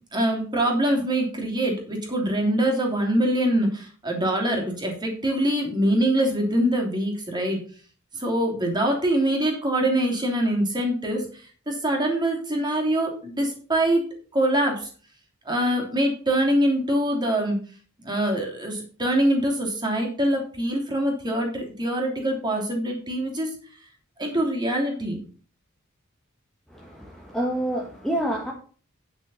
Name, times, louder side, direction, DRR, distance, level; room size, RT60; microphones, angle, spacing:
voice 1, 0.1-7.6 8.1-14.0 14.3-14.9 15.4-17.6 18.0-23.5 24.2-25.2, right 1 dB, 20° right, 0 dB, 3.0 m, -24 dB
voice 2, 26.7-28.5, right 1 dB, ahead, -2 dB, 1.4 m, -28 dB
10.0 x 6.2 x 5.5 m, 0.40 s
head